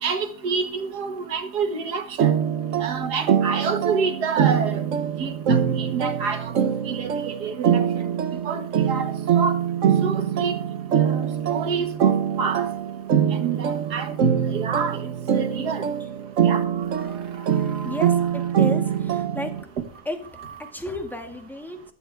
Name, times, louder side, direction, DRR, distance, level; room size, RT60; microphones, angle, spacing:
voice 1, 0.0-2.3 2.8-4.8 5.2-6.6 6.9-7.9 8.4-9.6 10.0-10.5 11.0-12.1 12.4-12.7 13.4-15.0 15.3-15.8 16.5-16.6 17.0-17.1 17.7-17.8, right 5 dB, 70° right, 8 dB, 2.0 m, -28 dB
sound 1, 2.2-19.6, right 8 dB, 50° right, 1.2 m, -23 dB
voice 2, 17.8-19.6 20.1-20.2 20.7-21.8, left 1 dB, ahead, 4 dB, 1.8 m, -32 dB
15.0 x 12.0 x 3.5 m, 0.43 s
omnidirectional pair, 1.8 m